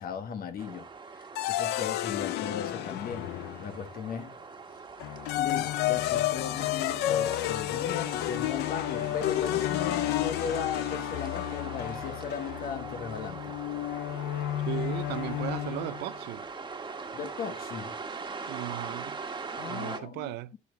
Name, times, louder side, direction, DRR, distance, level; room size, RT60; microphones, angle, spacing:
voice 1, 0.0-3.3 3.6-4.3 5.4-13.6 17.1-18.0 19.6-20.6, left 7 dB, 60° left, 1.4 m, -37 dB
sound 1, 0.6-20.0, right 4 dB, 25° right, 1.5 m, -42 dB
sound 2, 1.3-3.9 5.0-16.1, left 14 dB, 85° left, 0.5 m, -31 dB
voice 2, 14.7-16.5 18.5-19.2 19.7-20.5, right 16 dB, 85° right, 0.5 m, -36 dB
13.5 x 11.0 x 2.2 m
cardioid pair, 110°, 17 cm